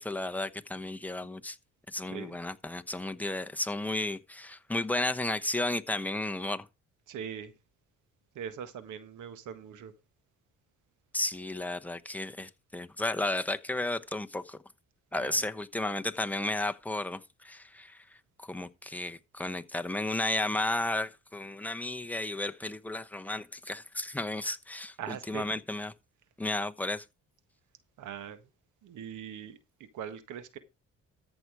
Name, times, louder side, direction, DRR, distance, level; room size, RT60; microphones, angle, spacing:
voice 1, 0.0-1.6 1.9-6.7 11.1-14.6 15.1-18.0 18.4-25.9 26.4-27.0, left 2 dB, 5° left, 0.9 m, -33 dB
voice 2, 7.1-7.5 8.3-9.9 15.1-15.4 25.0-25.6 28.0-28.4 28.8-30.6, right 8 dB, 80° right, 1.5 m, -41 dB
14.0 x 6.1 x 4.7 m
cardioid pair, 90°, 30 cm